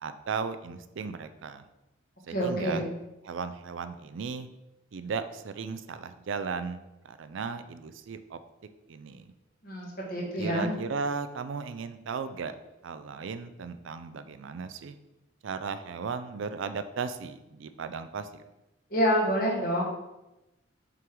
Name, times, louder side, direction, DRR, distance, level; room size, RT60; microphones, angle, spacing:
voice 1, 0.0-1.6 2.3-2.8 3.2-4.5 4.9-8.4 8.9-9.3 10.4-12.5 12.8-15.0 15.4-18.4, right 5 dB, 70° right, 11 dB, 0.4 m, -36 dB
voice 2, 2.3-2.9 9.6-10.7 18.9-19.8, equal, 45° left, -3 dB, 1.6 m, -27 dB
5.9 x 3.8 x 4.6 m, 0.95 s
head